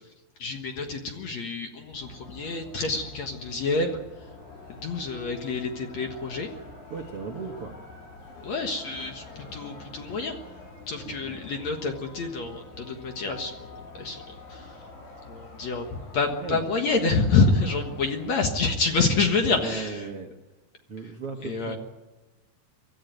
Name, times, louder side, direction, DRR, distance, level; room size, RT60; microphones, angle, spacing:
voice 1, 0.4-4.0 4.7-6.5 8.4-10.4 10.9-13.7 14.0-14.2 14.5-14.7 15.3-20.1 21.4-21.8, left 4 dB, 55° left, 4 dB, 2.3 m, -27 dB
sound 1, 1.9-18.4, left 3 dB, 80° left, 7.6 m, -46 dB
voice 2, 6.9-7.8 11.0-11.4 16.3-16.6 19.4-20.3 20.9-21.8, right 4 dB, 55° right, 2 dB, 1.7 m, -36 dB
24.5 x 14.0 x 9.2 m, 1.1 s
omnidirectional pair, 4.6 m